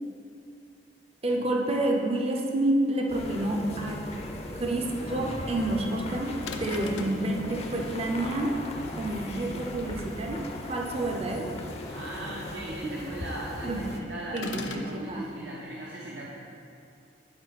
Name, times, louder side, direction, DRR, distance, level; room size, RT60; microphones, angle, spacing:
voice 1, 1.2-4.0 4.5-8.6 8.9-11.5 12.9-13.1 13.6-13.9 14.3-15.3, right 1 dB, 35° right, 1 dB, 0.6 m, -29 dB
sound 1, 3.1-14.0, left 1 dB, 35° left, 0.6 m, -38 dB
sound 2, 6.5-7.3 14.4-14.9, left 4 dB, 80° left, 0.6 m, -37 dB
voice 2, 11.9-16.3, right 1 dB, 75° right, -5 dB, 0.9 m, -39 dB
11.0 x 4.5 x 4.1 m, 2.6 s
head